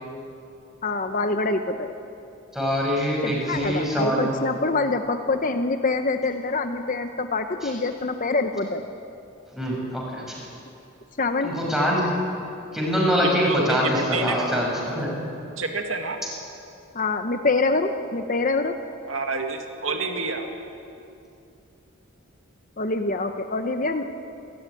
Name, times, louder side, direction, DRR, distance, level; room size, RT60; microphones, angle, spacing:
voice 1, 0.8-1.9 3.2-8.8 11.2-11.5 16.9-18.8 22.8-24.0, left 3 dB, 40° left, 7 dB, 0.9 m, -25 dB
voice 2, 2.5-4.3 7.6-7.7 9.5-10.4 11.4-12.0 12.7-15.1, equal, ahead, -3 dB, 6.4 m, -24 dB
voice 3, 13.2-14.7 15.6-16.2 19.1-20.5, right 3 dB, 75° right, 4 dB, 2.1 m, -28 dB
26.5 x 14.0 x 9.9 m, 2.6 s
head